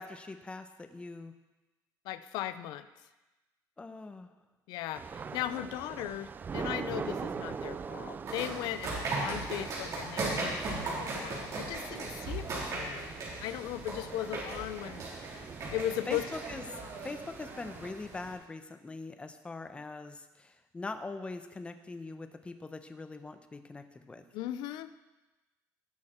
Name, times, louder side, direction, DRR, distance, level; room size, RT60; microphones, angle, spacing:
voice 1, 0.0-1.3 3.8-4.3 16.1-16.6 17.0-24.2, left 3 dB, 15° left, 8 dB, 0.8 m, -42 dB
voice 2, 2.0-2.9 4.7-13.1 13.4-15.0 15.7-16.2 24.3-24.9, left 12 dB, 75° left, 13 dB, 0.6 m, -37 dB
Thunder / Rain, 4.9-17.9, right 5 dB, 25° right, 0.5 m, -43 dB
sound 1, 8.3-18.3, right 2 dB, 50° right, 3.6 m, -38 dB
18.0 x 6.4 x 4.4 m, 1.1 s
cardioid pair, 130°, 7 cm